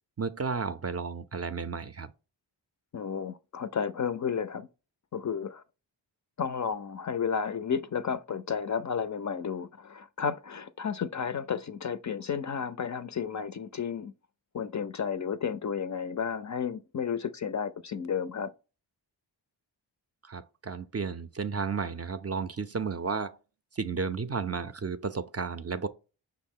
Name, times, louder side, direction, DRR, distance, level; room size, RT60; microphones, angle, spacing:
voice 1, 0.2-2.1 20.2-23.4 23.7-25.9, right 5 dB, 35° right, 0.4 m, -33 dB
voice 2, 2.9-4.7 5.1-5.6 6.4-14.1 14.5-18.5, left 7 dB, 40° left, 0.4 m, -32 dB
5.6 x 2.1 x 3.6 m
cardioid pair, 40°, 48 cm